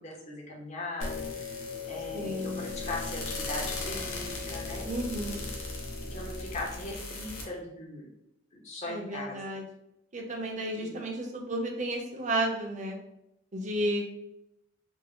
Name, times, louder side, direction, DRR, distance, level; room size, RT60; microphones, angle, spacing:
voice 1, 0.0-1.5 1.8-4.9 6.1-8.1 8.5-9.4 10.8-11.0, left 2 dB, 35° left, -2 dB, 0.7 m, -39 dB
sound 1, 1.0-7.4, left 3 dB, 80° left, 0.8 m, -37 dB
voice 2, 2.1-2.7 4.9-5.5 8.9-9.6 10.1-13.0 13.5-14.1, right 1 dB, 35° right, 1 dB, 0.6 m, -32 dB
3.4 x 2.0 x 3.6 m, 0.83 s
head